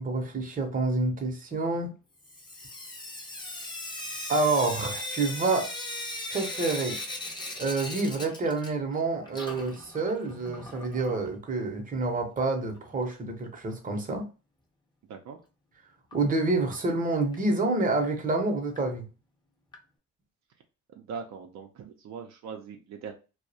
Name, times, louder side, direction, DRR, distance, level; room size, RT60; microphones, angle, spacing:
voice 1, 0.0-1.9 4.3-5.7 6.3-7.0 7.6-14.3 16.1-19.1, right 3 dB, 30° right, 0.7 m, -28 dB
Sink (filling or washing) / Drip, 2.2-9.0 9.2-11.2 12.4-12.5 12.8-12.9 13.1-13.2 16.1-16.2 16.7-16.8 17.3-17.4 18.0-18.1 18.8-18.9 19.7-19.8, left 1 dB, 15° left, 0.5 m, -38 dB
voice 2, 21.0-23.1, right 6 dB, 65° right, 0.4 m, -41 dB
2.3 x 2.0 x 2.6 m
cardioid pair, 90°, 30 cm